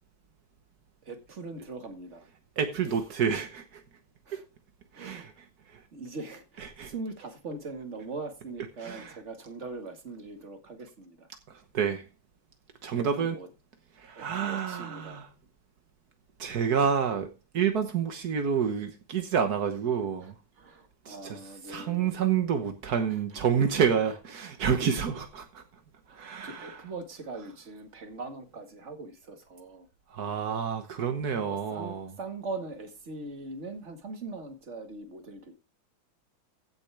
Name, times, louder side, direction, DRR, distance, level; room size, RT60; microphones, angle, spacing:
voice 1, 1.0-2.3 2.9-3.0 4.2-4.4 4.9-5.3 5.9-11.3 12.9-13.5 14.1-15.3 20.2-20.3 20.6-22.2 23.1-23.4 23.7-23.9 26.1-29.9 31.5-35.5, right 3 dB, 30° right, 1.6 m, -41 dB
voice 2, 2.6-3.8 4.3-4.4 4.9-5.3 5.7-5.8 6.6-6.9 8.8-9.2 11.5-12.0 12.8-13.3 14.0-15.3 16.4-20.3 21.0-21.4 21.7-25.6 26.1-26.8 30.1-32.1, right 7 dB, 70° right, 0.9 m, -29 dB
16.0 x 7.5 x 3.4 m
omnidirectional pair, 3.3 m